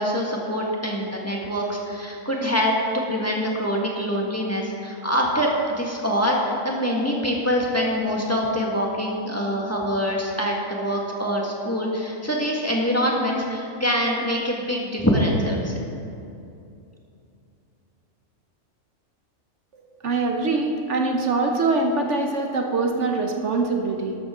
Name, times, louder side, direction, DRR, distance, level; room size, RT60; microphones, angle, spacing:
voice 1, 0.0-15.7, equal, 10° left, -2 dB, 1.6 m, -24 dB
voice 2, 20.0-24.2, right 3 dB, 65° right, 3 dB, 1.2 m, -23 dB
12.5 x 12.5 x 3.7 m, 2.6 s
omnidirectional pair, 1.4 m